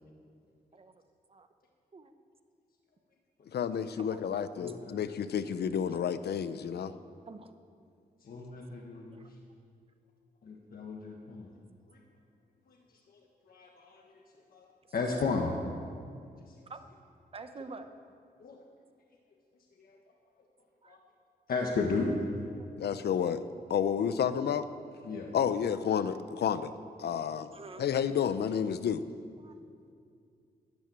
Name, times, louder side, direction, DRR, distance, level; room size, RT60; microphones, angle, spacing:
voice 1, 0.7-1.0 1.3-1.5 1.9-2.1 4.0-4.3 7.3-7.5 9.1-9.3 16.7-16.8 17.3-17.9 20.8-21.0 22.5-22.7 27.5-27.9 29.4-29.6, right 4 dB, 35° right, 8 dB, 0.9 m, -47 dB
voice 2, 3.5-6.9 22.8-23.4 23.7-24.7 25.3-26.7 27.0-27.5 27.8-29.0, left 8 dB, 90° left, 12 dB, 0.7 m, -30 dB
voice 3, 4.5-5.0 8.2-9.2 10.4-11.5 11.9-12.0 12.7-12.8 13.1-13.2 13.5-14.2 14.5-14.7 14.9-15.5 16.5-16.6 18.4-18.6 19.8-20.0 20.9-21.0 21.5-22.1 25.0-25.3, left 4 dB, 65° left, 0 dB, 1.5 m, -34 dB
12.5 x 10.5 x 8.8 m, 2.3 s
wide cardioid pair, 145°, 16 cm